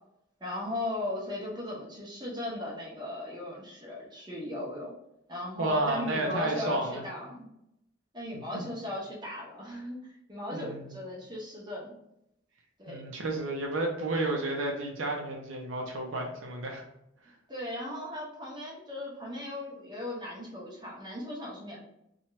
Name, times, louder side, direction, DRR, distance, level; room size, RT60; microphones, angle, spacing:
voice 1, 0.4-4.9 5.3-7.5 8.1-10.0 10.3-11.9 12.8-13.0 17.5-21.8, left 1 dB, 20° right, -5 dB, 0.8 m, -37 dB
voice 2, 5.6-7.0 8.3-8.7 10.5-11.0 12.9-16.8, right 2 dB, 80° right, 1 dB, 0.5 m, -32 dB
2.9 x 2.3 x 3.0 m, 0.82 s
head